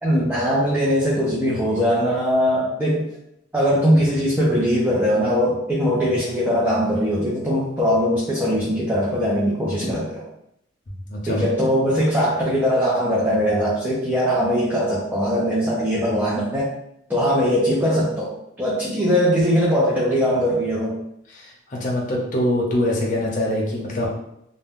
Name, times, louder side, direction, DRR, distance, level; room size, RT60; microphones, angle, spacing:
voice 1, 0.0-3.0 3.5-10.2 11.3-16.7 17.1-21.0, equal, 10° right, -7 dB, 0.5 m, -21 dB
voice 2, 11.1-11.4 21.3-24.1, left 1 dB, 40° left, -3 dB, 0.7 m, -24 dB
2.5 x 2.1 x 3.6 m, 0.78 s
head